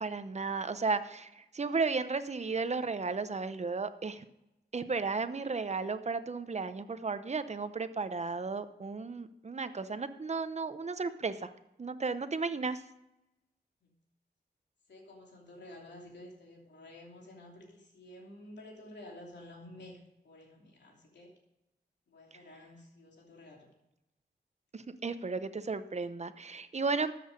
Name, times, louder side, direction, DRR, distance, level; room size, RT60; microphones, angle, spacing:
voice 1, 0.0-4.3 4.7-11.5 11.8-12.8 24.7-27.1, right 4 dB, 40° right, 11 dB, 0.8 m, -34 dB
voice 2, 14.9-21.3 22.1-23.7, left 1 dB, 90° left, -1 dB, 3.0 m, -51 dB
13.0 x 7.8 x 5.2 m, 0.92 s
wide cardioid pair, 95°, 18 cm